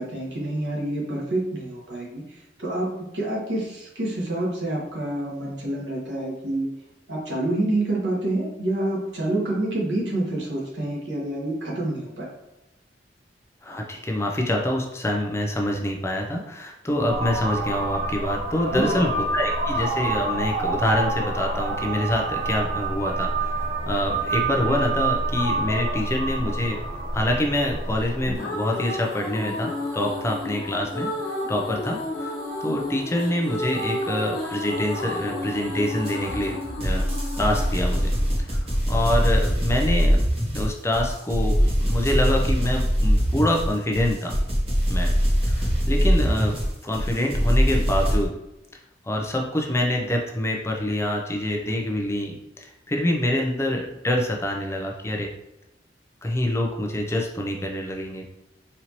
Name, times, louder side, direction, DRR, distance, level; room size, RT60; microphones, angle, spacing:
voice 1, 0.0-2.2 2.6-6.7 7.1-12.2 18.7-18.9, right 1 dB, 85° right, -5 dB, 1.3 m, -27 dB
voice 2, 13.6-26.8 27.1-31.1 31.5-32.3 32.6-37.0 37.4-38.1 38.4-40.2 40.5-44.3 44.9-45.1 45.4-46.6 46.8-48.3 49.0-55.3 56.2-58.3, left 1 dB, 15° left, 1 dB, 0.4 m, -26 dB
sound 1, 17.1-28.4, right 2 dB, 50° right, 0.6 m, -27 dB
sound 2, 28.0-39.1, left 1 dB, 60° left, 1.1 m, -32 dB
sound 3, 36.0-48.3, equal, 35° right, 1.2 m, -22 dB
4.2 x 2.7 x 2.9 m, 0.92 s
head